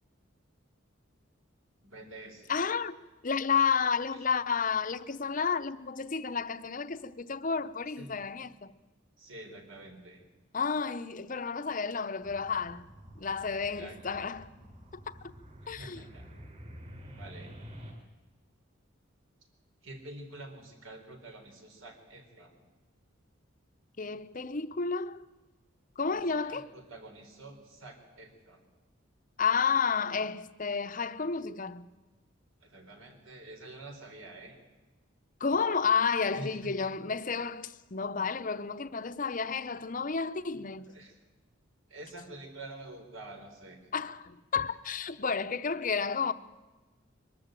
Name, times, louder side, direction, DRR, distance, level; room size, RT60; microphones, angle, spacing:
voice 1, 1.8-2.5 4.1-4.2 8.0-8.2 9.2-10.3 13.8-14.3 15.6-16.3 17.2-17.6 19.8-22.7 26.1-28.7 32.6-34.6 36.3-36.8 40.9-41.2 41.9-44.0, right 2 dB, 75° right, 3.9 m, -47 dB
voice 2, 2.5-8.7 10.5-12.8 13.2-14.5 15.7-16.0 24.0-25.3 26.0-26.7 29.4-31.9 35.4-40.9 43.9-46.3, left 5 dB, 40° left, 0.7 m, -31 dB
sound 1, 12.2-17.9, equal, 35° right, 5.6 m, -49 dB
23.0 x 13.5 x 8.9 m
head